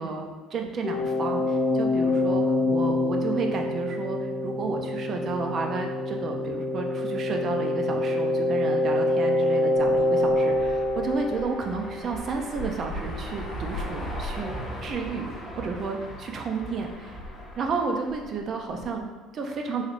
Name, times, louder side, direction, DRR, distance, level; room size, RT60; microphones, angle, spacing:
voice 1, 0.0-17.2 17.6-19.8, right 4 dB, 40° right, 3 dB, 0.4 m, -32 dB
sound 1, 0.8-12.4, left 2 dB, 50° left, 0.7 m, -26 dB
sound 2, 9.7-19.0, equal, 20° left, 1.0 m, -38 dB
4.0 x 3.2 x 2.5 m, 1.3 s
cardioid pair, 150°, 0 cm